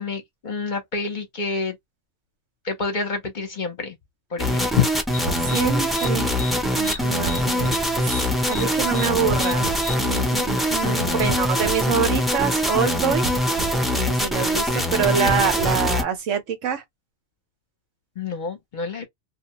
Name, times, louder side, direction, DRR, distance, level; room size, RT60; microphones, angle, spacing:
voice 1, 0.0-1.8 2.6-4.0 4.3-4.9 10.8-11.4 18.2-19.1, left 5 dB, 45° left, 0.7 m, -28 dB
sound 1, 4.4-16.0, equal, ahead, 0.4 m, -23 dB
sound 2, 5.1-10.2, left 5 dB, 20° left, 0.8 m, -37 dB
sound 3, 5.2-5.9 7.2-7.8 9.3-9.8 11.3-11.8 13.2-13.8 15.2-16.0, right 4 dB, 55° right, 0.5 m, -31 dB
voice 2, 5.4-6.3 6.7-13.2 13.9-16.8, right 7 dB, 90° right, 1.2 m, -26 dB
2.6 x 2.1 x 2.9 m
omnidirectional pair, 1.3 m